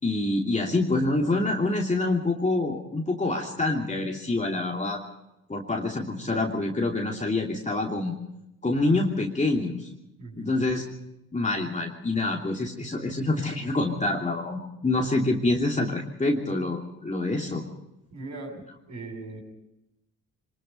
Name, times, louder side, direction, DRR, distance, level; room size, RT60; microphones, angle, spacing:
voice 1, 0.0-5.0 5.5-8.1 8.6-9.9 10.4-10.8 11.3-17.6, left 2 dB, 20° left, 0 dB, 2.9 m, -26 dB
voice 2, 10.2-10.5 18.1-18.6 18.9-19.4, right 3 dB, 50° right, 3 dB, 7.6 m, -39 dB
23.5 x 21.0 x 5.5 m, 0.89 s
hypercardioid pair, 55°, 34 cm